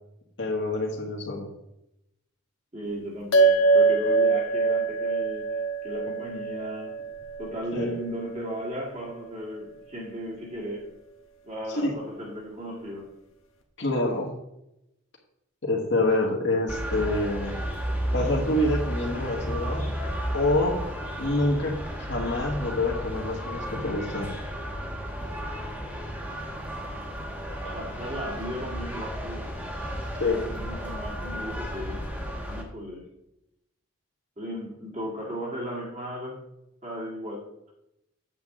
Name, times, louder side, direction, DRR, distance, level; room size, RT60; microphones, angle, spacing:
voice 1, 0.4-1.5 7.7-7.9 11.7-11.9 13.8-14.3 15.6-17.6 18.1-19.8 20.3-20.8 21.2-24.3 27.6-27.7 30.2-30.5, left 2 dB, 60° left, -1 dB, 1.6 m, -26 dB
voice 2, 2.7-7.0 7.4-10.9 11.4-13.2 27.7-29.6 30.4-33.1 34.4-36.5 36.8-37.7, equal, 35° right, -3 dB, 1.8 m, -36 dB
sound 1, 3.3-8.0, right 3 dB, 85° left, 1.2 m, -24 dB
sound 2, 16.7-32.6, equal, 10° right, 1.1 m, -33 dB
8.4 x 7.3 x 3.7 m, 0.85 s
head